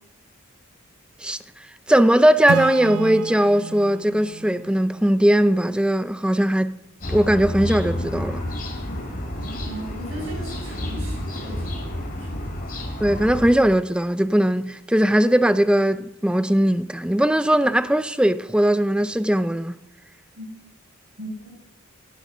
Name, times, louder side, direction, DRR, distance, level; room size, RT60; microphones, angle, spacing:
voice 1, 1.9-6.7 7.1-8.4 13.0-19.7, right 1 dB, 5° right, 0.4 m, -19 dB
Acoustic guitar / Strum, 2.5-6.0, right 7 dB, 90° right, 0.4 m, -32 dB
sound 1, 7.0-13.6, left 1 dB, 40° left, 2.7 m, -30 dB
voice 2, 9.4-12.4 20.4-20.5 21.2-21.5, right 1 dB, 65° right, 6.3 m, -37 dB
18.0 x 8.2 x 6.2 m
head